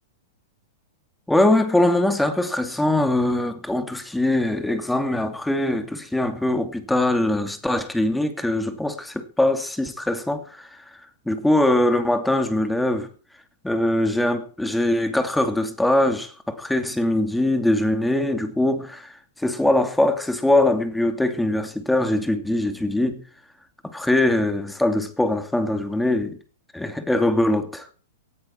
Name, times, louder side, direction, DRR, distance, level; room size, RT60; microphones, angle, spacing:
voice 1, 1.3-10.7 11.3-13.1 13.6-23.2 23.8-26.4 26.7-27.9, left 1 dB, 5° left, 2.5 m, -22 dB
18.5 x 14.0 x 4.5 m
hypercardioid pair, 115°, 0 cm